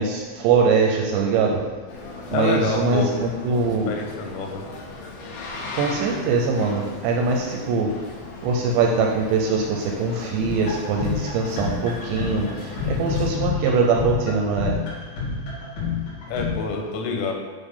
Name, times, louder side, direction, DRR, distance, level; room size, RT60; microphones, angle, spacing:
voice 1, 0.0-1.6 2.3-3.9 5.8-7.9 8.4-14.8, right 4 dB, 80° right, 1 dB, 2.6 m, -22 dB
Boat Water vehicle, 1.9-13.3, left 3 dB, 70° left, 2.4 m, -38 dB
voice 2, 2.3-3.1 3.6-4.7 16.3-17.3, left 4 dB, 85° left, 2 dB, 3.5 m, -27 dB
sound 1, 10.4-16.5, left 5 dB, 50° left, 3.9 m, -28 dB
9.4 x 3.6 x 5.4 m, 1.4 s
omnidirectional pair, 5.6 m